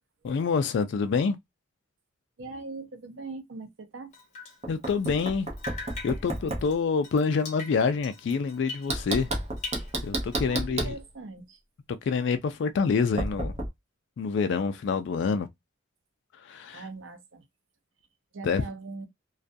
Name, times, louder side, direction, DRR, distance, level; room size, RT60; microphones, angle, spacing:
voice 1, 0.2-1.4 4.7-5.5 6.0-9.3 10.0-10.9 12.1-13.5 14.2-15.5 16.4-16.8 18.4-18.6, left 5 dB, 60° left, 0.3 m, -27 dB
voice 2, 2.4-4.1 10.4-11.6 16.7-17.4 18.3-19.1, right 3 dB, 70° right, 0.6 m, -41 dB
Drip, 4.1-5.3 5.6-9.3 9.6-10.6, left 4 dB, 35° left, 0.8 m, -42 dB
Knock, 4.6-6.7 8.9-11.0 13.2-13.7, right 1 dB, 35° right, 0.6 m, -31 dB
2.3 x 2.2 x 2.5 m
head